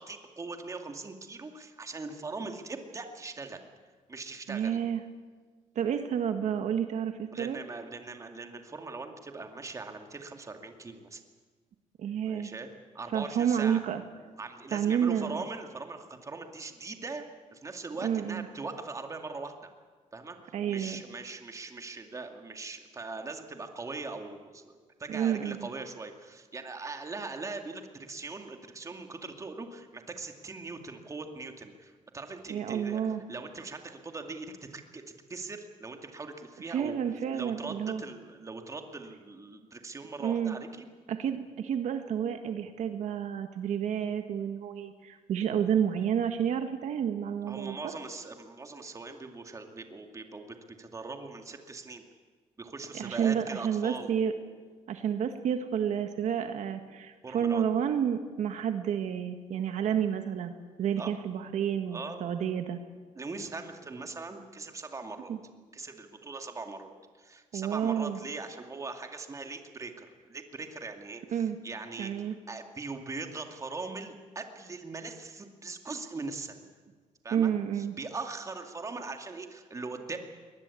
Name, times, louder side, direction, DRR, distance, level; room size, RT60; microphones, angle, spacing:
voice 1, 0.0-3.6 4.1-4.8 7.3-11.2 12.3-12.7 12.9-13.8 14.4-17.3 17.5-19.7 20.1-37.0 37.3-40.9 47.5-52.0 52.6-54.1 57.2-57.7 61.0-61.1 61.9-62.2 63.2-65.3 65.7-66.9 67.2-76.7 77.2-77.5 77.8-80.2, right 3 dB, 25° right, 5 dB, 2.3 m, -41 dB
voice 2, 4.5-5.0 5.7-7.6 12.0-12.5 13.1-14.0 14.7-15.4 18.0-18.4 20.5-21.0 25.1-25.7 32.5-33.2 36.7-38.0 40.2-40.6 41.1-47.7 52.9-54.3 54.9-62.8 65.3-65.4 67.5-68.2 71.3-71.6 72.0-72.3 77.3-77.9, right 8 dB, 70° right, 7 dB, 1.7 m, -30 dB
23.0 x 20.0 x 8.5 m, 1.5 s
cardioid pair, 130°, 13 cm